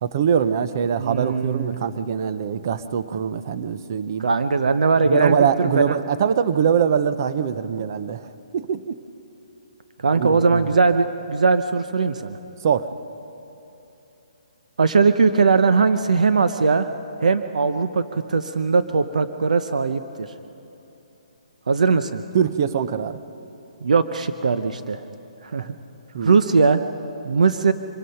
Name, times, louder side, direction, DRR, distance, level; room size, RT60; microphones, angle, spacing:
voice 1, 0.0-4.3 5.1-8.3 8.5-9.0 10.1-10.6 12.6-12.9 22.3-23.2 26.1-26.4, right 7 dB, 25° right, 13 dB, 0.5 m, -23 dB
voice 2, 1.0-1.8 4.2-6.0 10.0-12.4 14.8-16.9 17.2-20.3 21.7-22.2 23.8-25.0 25.4-25.7 26.2-26.8 27.2-27.7, right 4 dB, 75° right, 10 dB, 0.8 m, -20 dB
25.0 x 21.0 x 5.7 m, 3.0 s
hypercardioid pair, 180°, 4 cm